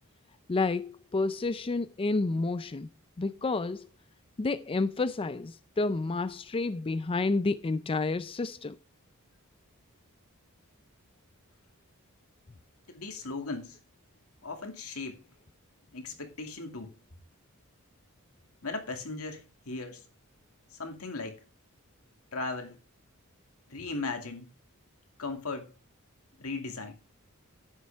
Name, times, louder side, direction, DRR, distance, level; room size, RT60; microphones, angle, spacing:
voice 1, 0.5-2.9 3.2-3.9 4.4-8.8, left 3 dB, 25° left, 0.4 m, -30 dB
voice 2, 12.9-13.8 14.4-15.2 15.9-16.9 18.6-20.0 20.8-21.4 22.3-22.8 23.7-24.5 25.2-25.7 26.4-26.9, left 3 dB, 75° left, 2.4 m, -37 dB
11.0 x 9.7 x 3.5 m
head